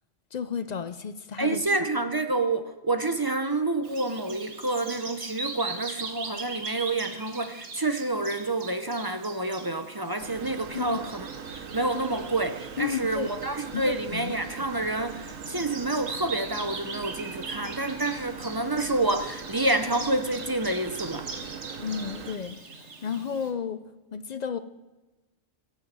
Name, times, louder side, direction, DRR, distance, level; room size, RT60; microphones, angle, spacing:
voice 1, 0.3-1.6 10.7-11.0 12.8-13.3 13.7-14.3 21.8-23.8 24.1-24.6, left 7 dB, 60° left, 0.4 m, -32 dB
voice 2, 1.4-11.3 11.5-21.3, right 2 dB, 25° right, 0.6 m, -28 dB
Bird vocalization bird call bird song, 3.8-23.5, right 4 dB, 60° right, 1.7 m, -41 dB
sound 1, 10.2-22.4, right 6 dB, 80° right, 1.3 m, -41 dB
16.5 x 7.3 x 7.5 m
omnidirectional pair, 1.3 m